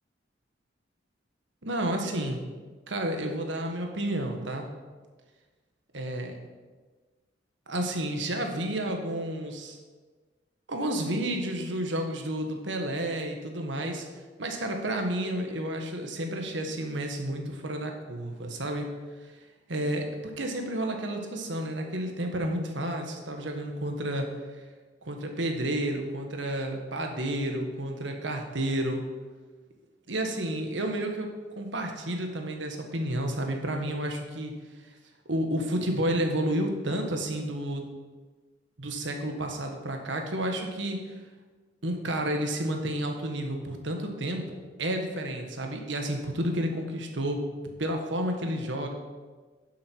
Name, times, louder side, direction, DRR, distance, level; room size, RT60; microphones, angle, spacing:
voice 1, 1.6-2.4 2.9-4.7 5.9-6.4 7.7-9.8 10.7-14.0 14.4-18.9 19.3-19.4 19.7-24.3 25.0-29.0 30.1-34.5 35.3-37.9 38.8-41.0 41.8-47.4 47.8-48.9, right 1 dB, 75° right, 3 dB, 1.6 m, -31 dB
11.5 x 7.5 x 4.7 m, 1.4 s
head